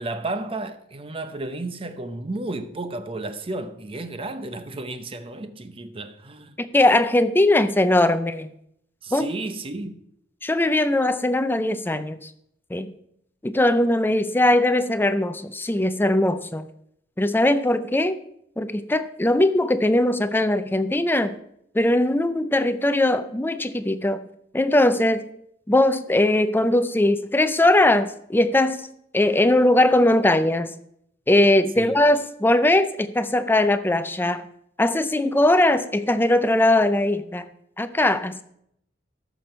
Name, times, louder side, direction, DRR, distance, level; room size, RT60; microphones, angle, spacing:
voice 1, 0.0-6.5 9.0-10.0 31.8-31.9, right 2 dB, 30° right, 0.7 m, -32 dB
voice 2, 6.6-8.5 9.1-9.3 10.4-12.3 12.7-12.9 13.4-16.7 17.2-18.2 18.6-21.4 21.7-24.2 24.5-25.3 25.7-28.8 29.1-30.7 31.3-34.4 34.8-37.5 37.8-38.4, left 1 dB, 10° left, 0.5 m, -20 dB
14.0 x 6.1 x 4.6 m
head